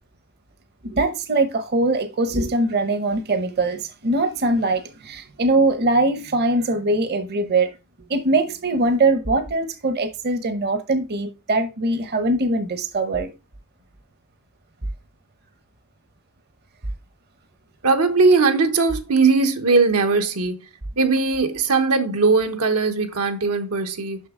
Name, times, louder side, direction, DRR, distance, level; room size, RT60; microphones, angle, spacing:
voice 1, 0.8-7.7 8.1-13.3, right 2 dB, 45° right, 0.8 m, -22 dB
voice 2, 17.8-20.6 21.0-24.2, right 4 dB, 80° right, 1.0 m, -19 dB
6.6 x 5.9 x 3.6 m
head